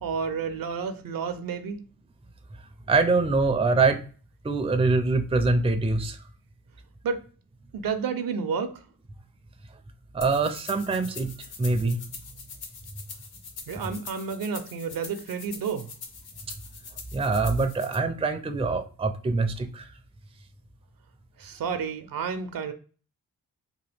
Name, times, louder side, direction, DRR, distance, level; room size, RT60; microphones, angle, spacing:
voice 1, 0.0-1.8 7.0-7.2 7.7-8.8 13.7-15.9 21.4-22.7, right 6 dB, 65° right, 0.6 m, -30 dB
voice 2, 2.9-4.0 4.4-6.2 10.1-11.3 11.6-12.0 17.1-19.8, right 3 dB, 15° right, 0.4 m, -24 dB
sound 1, 10.2-17.9, left 5 dB, 80° left, 0.7 m, -43 dB
3.0 x 2.2 x 3.3 m
cardioid pair, 50°, 37 cm